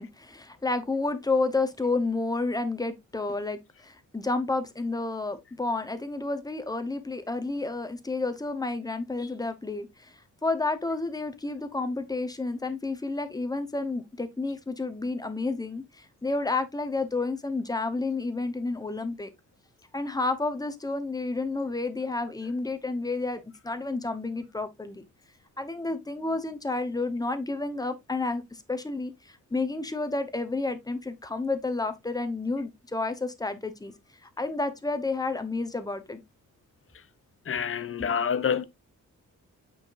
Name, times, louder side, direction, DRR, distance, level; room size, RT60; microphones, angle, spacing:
voice 1, 0.0-10.1 10.4-19.3 19.9-25.0 25.6-33.9 34.2-36.2, left 3 dB, 10° left, 0.9 m, -30 dB
voice 2, 37.5-38.6, left 7 dB, 45° left, 0.7 m, -27 dB
8.4 x 4.9 x 2.5 m
wide cardioid pair, 165°, 31 cm